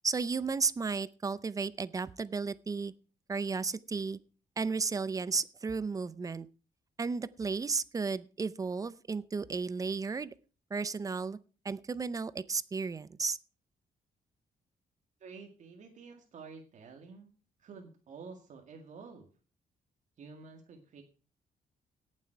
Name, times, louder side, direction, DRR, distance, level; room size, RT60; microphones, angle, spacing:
voice 1, 0.0-2.9 3.3-4.2 4.6-6.5 7.0-10.3 10.7-11.4 11.6-13.4, right 4 dB, 25° right, 17 dB, 0.5 m, -33 dB
voice 2, 15.2-17.3 17.6-19.3 20.2-21.0, right 5 dB, 55° right, 4 dB, 2.0 m, -50 dB
18.0 x 7.5 x 4.5 m, 0.37 s
wide cardioid pair, 165°, 15 cm